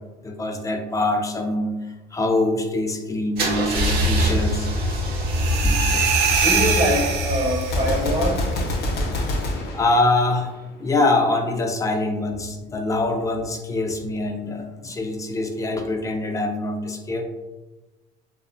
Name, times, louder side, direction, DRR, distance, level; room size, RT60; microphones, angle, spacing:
voice 1, 0.2-5.0 5.4-6.2 9.1-9.3 9.7-10.5 10.8-17.2, left 2 dB, 20° left, 3 dB, 0.3 m, -24 dB
Car / Engine starting / Idling, 3.4-9.2, equal, 70° right, 0.8 m, -25 dB
sound 1, 5.3-8.0, right 6 dB, 85° right, 0.4 m, -23 dB
voice 2, 6.3-8.5, equal, 35° right, -3 dB, 0.6 m, -24 dB
Gunshot gunfire, 7.6-10.7, left 1 dB, 70° left, 0.6 m, -26 dB
2.9 x 2.1 x 2.4 m, 1.1 s
cardioid pair, 110°, 17 cm